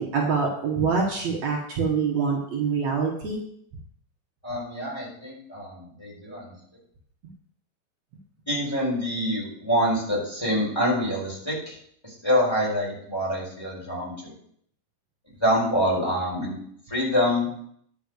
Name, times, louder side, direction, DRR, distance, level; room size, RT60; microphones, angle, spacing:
voice 1, 0.0-3.4, right 5 dB, 65° right, -1 dB, 2.5 m, -25 dB
voice 2, 4.4-6.5 8.5-11.8 12.0-14.3 15.4-16.5 16.9-17.5, equal, 10° left, -5 dB, 4.3 m, -26 dB
10.0 x 5.8 x 6.5 m, 0.67 s
omnidirectional pair, 3.6 m